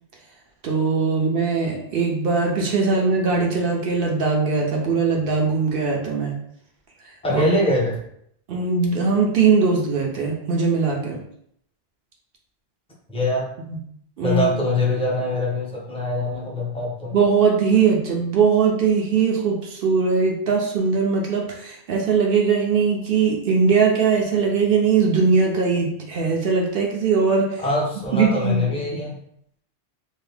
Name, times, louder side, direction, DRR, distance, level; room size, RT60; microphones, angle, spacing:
voice 1, 0.6-6.3 7.3-7.5 8.5-11.2 13.7-13.8 14.2-14.5 17.1-27.6 28.1-28.8, right 5 dB, 60° right, 0 dB, 0.7 m, -20 dB
voice 2, 7.2-8.0 13.1-13.5 14.2-17.1 27.6-29.2, left 1 dB, 5° left, -4 dB, 0.6 m, -23 dB
2.7 x 2.6 x 3.3 m, 0.71 s
omnidirectional pair, 1.2 m